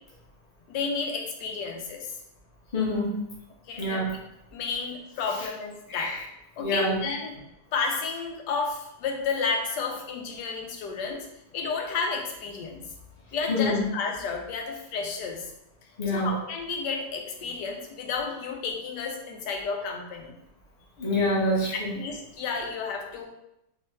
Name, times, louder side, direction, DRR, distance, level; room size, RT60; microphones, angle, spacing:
voice 1, 0.7-2.1 3.7-4.0 4.5-6.1 6.6-7.3 7.7-11.2 11.5-12.8 13.3-15.4 16.1-20.3 21.7-23.3, left 5 dB, 80° left, 2 dB, 1.3 m, -31 dB
voice 2, 2.7-3.1 3.8-4.1 5.9-6.2 6.6-7.0 13.5-13.8 16.0-16.3 21.0-21.9, left 1 dB, 30° left, -4 dB, 0.8 m, -26 dB
3.6 x 3.0 x 3.2 m, 0.85 s
omnidirectional pair, 1.8 m